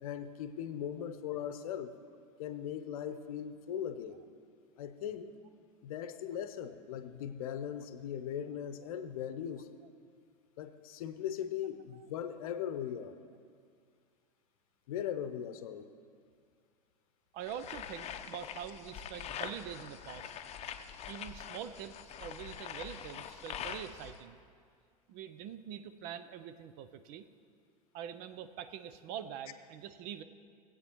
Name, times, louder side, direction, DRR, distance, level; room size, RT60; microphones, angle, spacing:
voice 1, 0.0-1.9 2.4-4.2 4.8-5.3 5.8-9.7 10.6-13.2 14.9-15.9, left 9 dB, 65° left, 10 dB, 0.8 m, -39 dB
voice 2, 17.3-20.3 21.1-24.4 25.1-27.3 27.9-30.2, right 9 dB, 50° right, 12 dB, 0.6 m, -44 dB
sound 1, 17.5-24.2, left 9 dB, 35° left, 0.7 m, -44 dB
19.5 x 8.4 x 3.1 m, 2.2 s
hypercardioid pair, 90°, 19 cm